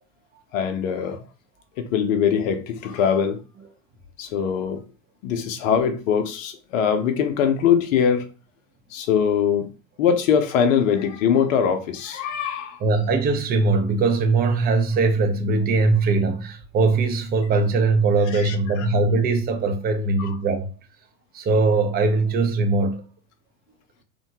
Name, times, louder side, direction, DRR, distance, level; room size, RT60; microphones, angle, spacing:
voice 1, 0.5-1.2 1.8-3.4 4.2-4.8 5.2-8.3 8.9-9.7 10.0-12.8 18.3-18.9 20.2-20.4, left 7 dB, 65° left, 0.6 m, -22 dB
voice 2, 12.8-20.7 21.3-23.1, right 3 dB, 20° right, 0.5 m, -21 dB
2.8 x 2.2 x 2.8 m
hypercardioid pair, 90°, 42 cm